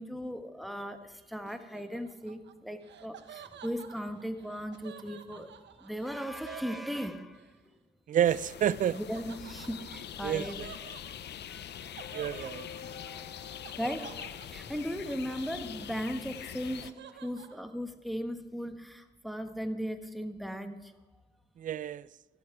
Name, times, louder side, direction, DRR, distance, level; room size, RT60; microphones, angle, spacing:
voice 1, 0.0-7.6 8.9-10.7 11.5-11.7 12.1-12.4 12.9-13.2 13.8-20.9, equal, ahead, 1.3 m, -38 dB
Laughter, 1.5-7.5 8.9-15.9 16.2-17.6, right 8 dB, 65° right, 0.9 m, -51 dB
voice 2, 8.1-9.0 10.2-10.7 12.1-12.7 21.6-22.1, right 10 dB, 40° right, 0.4 m, -29 dB
sound 1, 8.2-16.9, left 10 dB, 60° left, 0.6 m, -44 dB
sound 2, 9.6-15.9, left 7 dB, 80° left, 1.3 m, -52 dB
13.5 x 12.0 x 4.8 m
cardioid pair, 90°, 20 cm